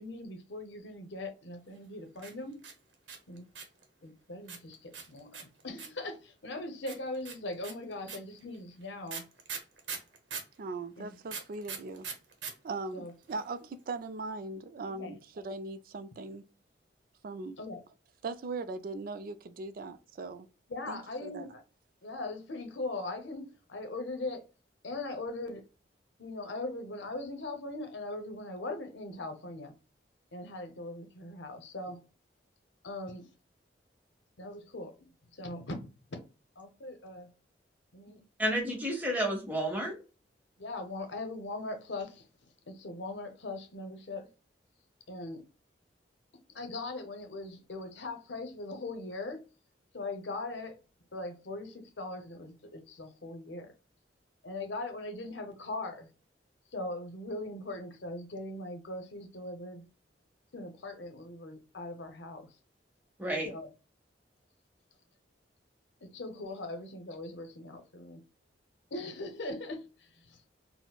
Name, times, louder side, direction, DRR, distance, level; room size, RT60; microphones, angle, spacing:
voice 1, 0.0-2.6 3.3-3.5 4.0-9.3 11.0-11.3 12.9-13.1 14.9-15.2 17.6-17.8 20.7-21.5 22.0-24.4 24.8-25.6 26.2-29.7 30.3-32.0 32.8-33.3 34.4-35.0 35.3-35.8 36.1-36.3 36.6-37.3 37.9-38.2 40.6-42.3 42.7-44.3 45.1-45.4 46.5-49.5 49.9-50.8 51.1-53.7 54.4-56.1 56.7-59.9 60.5-62.5 63.5-63.7 66.0-68.2 68.9-70.4, left 2 dB, 75° left, 0.7 m, -40 dB
sound 1, 2.2-3.8 4.5-6.1 6.9-10.6 11.3-12.5 12.8-12.9 13.1-13.5, right 6 dB, 85° right, 0.8 m, -41 dB
voice 2, 10.6-12.1 12.6-16.4 17.2-17.6 18.2-20.5 20.9-21.5, right 3 dB, 50° right, 0.3 m, -39 dB
voice 3, 38.4-40.0 63.2-63.5, right 1 dB, 10° right, 0.9 m, -31 dB
4.2 x 2.0 x 2.2 m
head